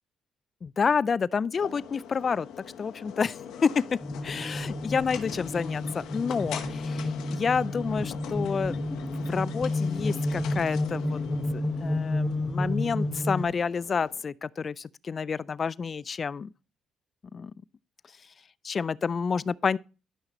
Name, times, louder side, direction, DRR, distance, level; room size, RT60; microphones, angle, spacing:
voice 1, 0.6-2.5 2.8-8.8 9.2-11.2 11.5-16.5 17.3-17.5 18.6-19.8, left 5 dB, 40° left, 0.3 m, -29 dB
sound 1, 1.6-14.2, left 8 dB, 80° left, 1.0 m, -43 dB
sound 2, 4.0-13.4, left 1 dB, 15° left, 0.9 m, -31 dB
12.0 x 5.8 x 3.0 m
cardioid pair, 85°, 0 cm